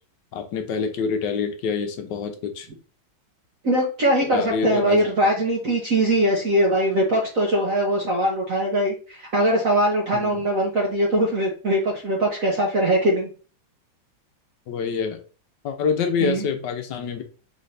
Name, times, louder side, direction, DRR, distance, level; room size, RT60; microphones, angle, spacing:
voice 1, 0.3-2.7 4.2-5.0 10.1-10.4 14.7-15.2 15.6-17.2, left 6 dB, 65° left, 6 dB, 1.3 m, -26 dB
voice 2, 3.6-13.3 16.2-16.5, right 1 dB, 50° right, -2 dB, 1.1 m, -21 dB
4.0 x 4.0 x 3.2 m, 0.38 s
omnidirectional pair, 2.2 m